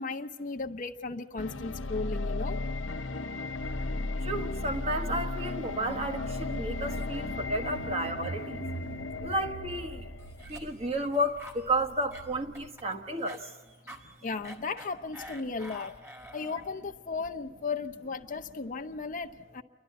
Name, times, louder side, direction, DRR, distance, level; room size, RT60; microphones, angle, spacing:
voice 1, 0.0-2.6 14.2-15.9 16.3-19.6, left 4 dB, 45° left, 0.7 m, -35 dB
sound 1, 1.4-10.4, left 2 dB, 85° left, 0.8 m, -35 dB
voice 2, 4.2-8.7 9.2-10.1 10.4-13.5, right 1 dB, 35° right, 1.3 m, -32 dB
Car / Engine, 5.6-12.7, right 3 dB, 85° right, 1.9 m, -44 dB
Cough, 10.2-16.8, equal, 15° right, 1.6 m, -48 dB
28.5 x 12.0 x 9.3 m
head